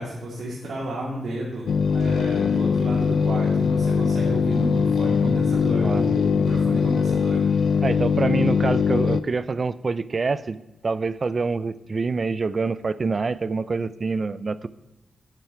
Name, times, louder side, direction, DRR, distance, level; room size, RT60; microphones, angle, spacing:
voice 1, 0.0-7.8, right 1 dB, 70° right, -5 dB, 2.8 m, -31 dB
sound 1, 1.7-9.2, left 6 dB, 75° left, 0.6 m, -21 dB
voice 2, 7.8-14.7, right 4 dB, 40° right, 16 dB, 0.5 m, -26 dB
11.5 x 9.8 x 5.8 m, 1.0 s
wide cardioid pair, 120°, 0 cm